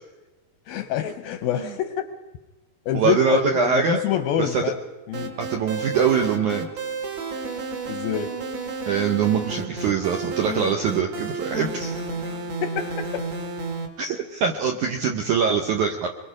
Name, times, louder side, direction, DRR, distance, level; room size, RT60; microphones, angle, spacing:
voice 1, 0.7-2.1 2.9-4.8 5.1-5.3 7.9-8.4 12.3-13.3, left 10 dB, 80° left, 2.2 m, -27 dB
voice 2, 2.9-4.0 4.4-4.6 5.4-6.7 8.9-12.0 14.0-16.1, right 6 dB, 75° right, 1.8 m, -23 dB
sound 1, 5.1-13.9, right 3 dB, 45° right, 2.6 m, -32 dB
24.5 x 22.5 x 5.1 m
omnidirectional pair, 4.9 m